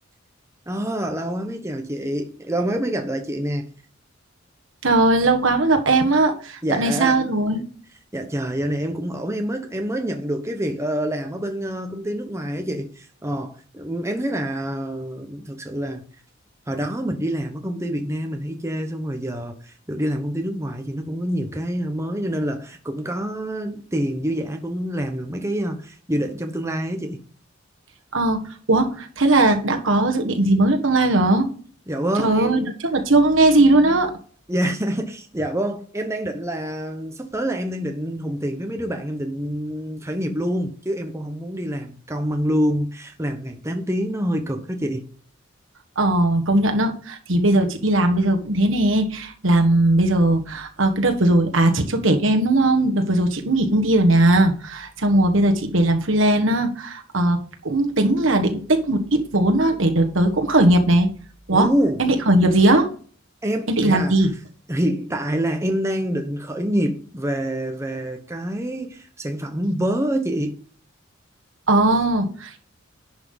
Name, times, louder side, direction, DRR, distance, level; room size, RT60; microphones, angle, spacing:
voice 1, 0.7-3.7 6.6-7.2 8.1-16.1 16.7-27.2 31.9-32.7 34.5-45.1 61.5-62.0 63.4-64.1 64.7-70.6, equal, 15° right, 1.1 m, -26 dB
voice 2, 4.8-7.6 28.1-28.4 28.7-31.5 32.2-34.1 46.0-61.1 61.5-61.7 62.0-62.9 63.7-64.3 71.7-72.6, right 2 dB, 75° right, 1.6 m, -18 dB
11.0 x 5.8 x 4.1 m
head